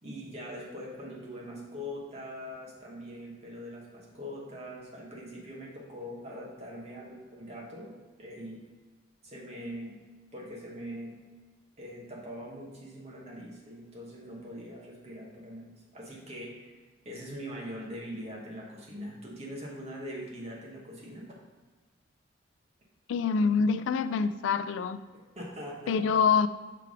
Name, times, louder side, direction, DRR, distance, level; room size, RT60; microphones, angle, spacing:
voice 1, 0.0-7.9 8.2-8.6 9.2-10.0 10.3-11.1 11.8-16.7 17.0-21.4 25.1-26.0, equal, 35° right, -3 dB, 1.2 m, -42 dB
voice 2, 23.1-25.0 25.9-26.5, left 5 dB, 85° left, 12 dB, 0.3 m, -25 dB
6.0 x 3.4 x 4.8 m, 1.3 s
head